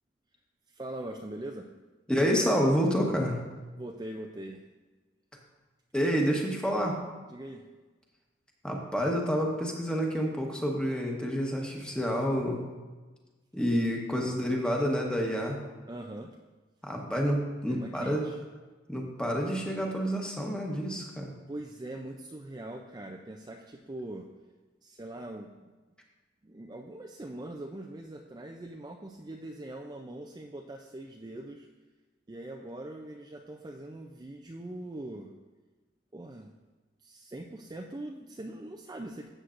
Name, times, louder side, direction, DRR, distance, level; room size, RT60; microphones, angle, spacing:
voice 1, 0.7-1.7 3.8-4.7 7.3-7.6 14.2-14.6 15.9-16.4 17.7-18.4 21.5-24.3 24.8-25.5 26.4-31.7 32.3-35.3 36.1-36.5 37.0-39.3, right 1 dB, 20° right, 1 dB, 0.4 m, -42 dB
voice 2, 2.1-3.4 5.9-7.0 8.6-12.6 13.5-15.6 16.8-18.2 18.9-21.3, equal, 5° left, 0 dB, 1.1 m, -28 dB
12.5 x 7.8 x 2.5 m, 1.3 s
head